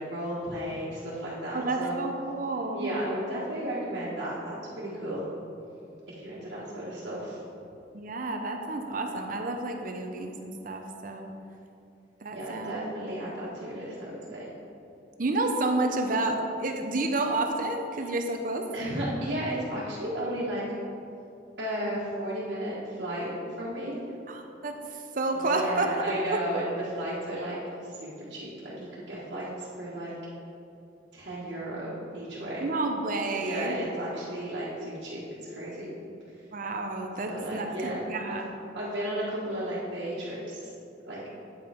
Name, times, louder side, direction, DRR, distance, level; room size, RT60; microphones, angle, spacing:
voice 1, 0.0-2.0 2.7-5.2 6.2-7.4 12.3-14.5 17.9-18.0 18.7-20.6 21.6-23.3 23.6-24.0 25.5-27.6 27.9-30.1 31.1-32.6 33.3-35.2 35.5-35.9 37.3-38.4 38.7-41.3, right 1 dB, 70° right, -9 dB, 1.6 m, -34 dB
voice 2, 1.5-2.9 7.9-11.3 12.2-12.7 15.2-18.7 24.3-26.0 26.3-26.4 32.6-33.8 36.5-38.4, right 2 dB, 50° right, 4 dB, 0.7 m, -30 dB
9.5 x 5.3 x 4.4 m, 2.6 s
head